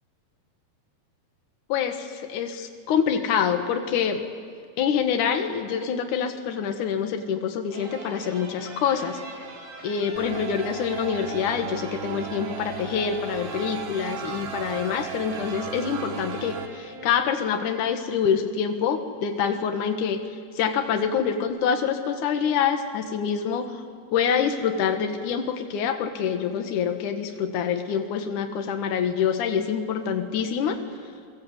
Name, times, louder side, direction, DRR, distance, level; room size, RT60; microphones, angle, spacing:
voice 1, 1.7-4.3 4.8-9.2 9.8-20.2 20.6-23.8 24.1-30.8, left 7 dB, 55° left, 5 dB, 2.5 m, -26 dB
sound 1, 7.7-17.7, right 2 dB, 90° right, 6.3 m, -42 dB
sound 2, 10.2-16.7, right 9 dB, 70° right, 1.9 m, -36 dB
29.5 x 23.5 x 8.2 m, 2.1 s
omnidirectional pair, 5.3 m